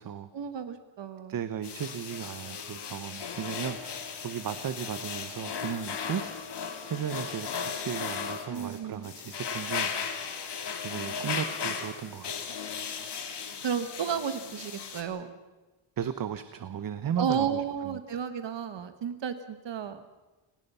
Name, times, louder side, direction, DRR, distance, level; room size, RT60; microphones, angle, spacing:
voice 1, 0.3-1.3 8.5-9.1 13.6-15.3 17.2-20.0, right 7 dB, 60° right, 10 dB, 1.5 m, -32 dB
voice 2, 1.3-6.4 6.9-9.9 10.8-12.5 16.0-17.6, right 8 dB, 45° right, 12 dB, 0.9 m, -35 dB
sound 1, 1.6-15.0, left 6 dB, 55° left, 2.9 m, -36 dB
30.0 x 18.0 x 5.6 m, 1.2 s
wide cardioid pair, 165°, 50 cm